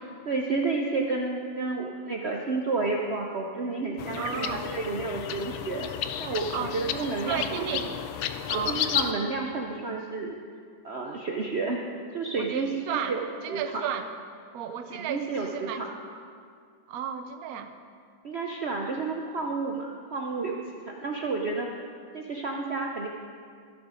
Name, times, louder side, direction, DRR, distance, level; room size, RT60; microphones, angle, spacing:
voice 1, 0.3-5.9 6.2-7.4 8.5-10.4 10.8-11.8 12.1-13.2 13.5-13.6 14.9-16.2 18.2-20.6 20.9-21.7 22.1-23.1, right 3 dB, 85° right, 1 dB, 0.5 m, -31 dB
sound 1, 4.0-9.1, left 10 dB, 90° left, 1.4 m, -32 dB
voice 2, 4.2-4.7 6.5-6.8 7.3-7.9 8.5-8.8 12.4-13.2 13.4-14.1 14.5-15.8 16.9-17.7, right 9 dB, 60° right, 7 dB, 1.0 m, -33 dB
14.0 x 7.1 x 5.0 m, 2.2 s
omnidirectional pair, 2.2 m